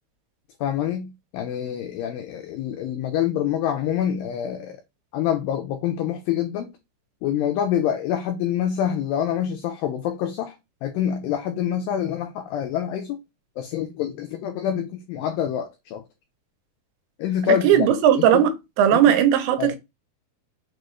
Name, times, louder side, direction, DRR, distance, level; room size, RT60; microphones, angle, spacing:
voice 1, 0.6-4.8 5.1-6.7 7.2-10.6 10.8-13.2 13.6-16.0 17.2-17.9 18.3-18.4 18.9-19.0 19.6-19.8, left 10 dB, 90° left, 1.9 m, -26 dB
voice 2, 17.6-18.5 18.8-19.8, right 10 dB, 85° right, 2.7 m, -17 dB
6.3 x 2.3 x 3.1 m
omnidirectional pair, 4.6 m